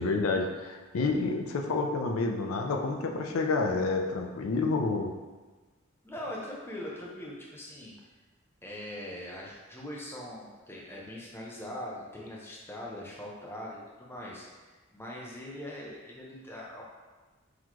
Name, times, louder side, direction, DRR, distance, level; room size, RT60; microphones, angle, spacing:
voice 1, 0.0-5.1, left 3 dB, 80° left, 3 dB, 0.4 m, -29 dB
voice 2, 6.0-7.9 8.6-16.8, left 1 dB, 10° left, -4 dB, 0.6 m, -41 dB
4.0 x 2.9 x 2.9 m, 1.3 s
head